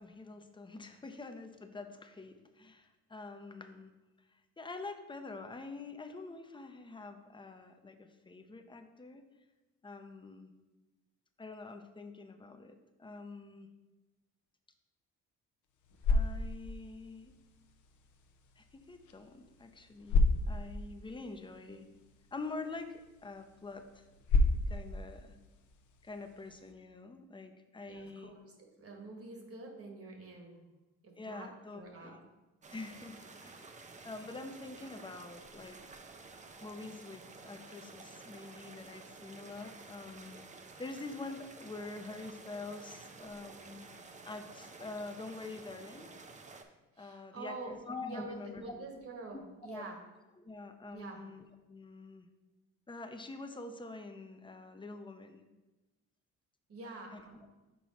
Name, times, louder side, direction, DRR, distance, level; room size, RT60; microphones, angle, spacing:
voice 1, 0.0-3.9 4.3-9.2 9.8-10.5 11.4-13.7 16.1-17.3 18.6-21.9 22.3-24.1 24.7-25.4 26.0-28.3 31.2-32.2 32.7-35.8 36.6-40.4 40.8-43.9 44.2-46.1 47.0-48.9 49.7-49.8 50.4-52.3 52.9-55.4 56.8-57.2, left 3 dB, 15° left, 7 dB, 0.6 m, -46 dB
sound 1, 15.6-26.7, left 2 dB, 75° left, 0.7 m, -34 dB
voice 2, 27.8-28.5 28.8-30.6 31.0-32.2 46.9-47.8 48.1-50.0 50.9-51.2 56.7-57.5, right 3 dB, 50° right, 2 dB, 1.4 m, -47 dB
sound 2, 32.6-46.6, right 3 dB, 25° right, 0.5 m, -52 dB
6.1 x 4.5 x 4.2 m, 1.1 s
cardioid pair, 90°, 30 cm